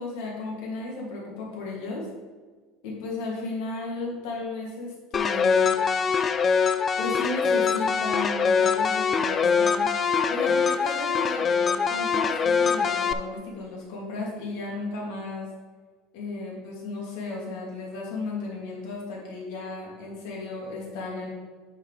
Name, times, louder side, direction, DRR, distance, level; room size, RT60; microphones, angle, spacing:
voice 1, 0.0-2.1 2.8-5.7 7.0-9.9 10.3-15.5 16.1-21.3, left 3 dB, 70° left, -3 dB, 2.6 m, -34 dB
sound 1, 5.1-13.1, left 6 dB, 20° left, 0.3 m, -23 dB
10.0 x 5.6 x 3.4 m, 1.4 s
cardioid pair, 175°, 0 cm